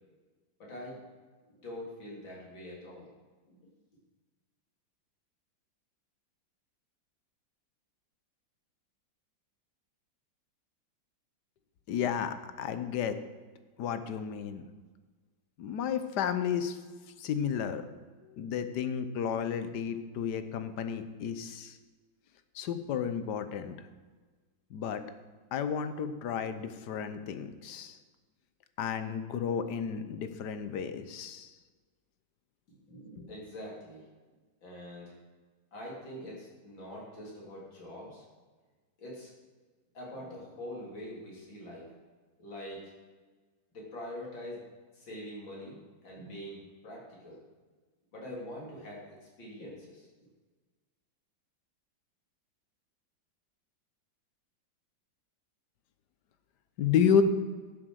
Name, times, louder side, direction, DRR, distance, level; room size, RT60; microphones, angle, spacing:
voice 1, 0.6-1.0 1.5-3.1 3.5-3.6 32.9-34.0 34.6-35.2 35.7-38.2 39.0-39.3 39.9-41.9 42.4-42.9 43.7-44.6 44.9-47.4 48.1-49.0 49.4-50.1, left 1 dB, 80° left, -4 dB, 4.0 m, -44 dB
voice 2, 11.9-13.2 13.8-14.6 15.6-16.8 17.2-17.8 18.2-21.8 22.5-23.7 24.7-25.0 25.5-27.9 28.8-31.5 33.2-33.3 56.8-57.2, left 8 dB, 65° left, 11 dB, 1.3 m, -32 dB
11.5 x 7.4 x 6.3 m, 1.4 s
omnidirectional pair, 2.1 m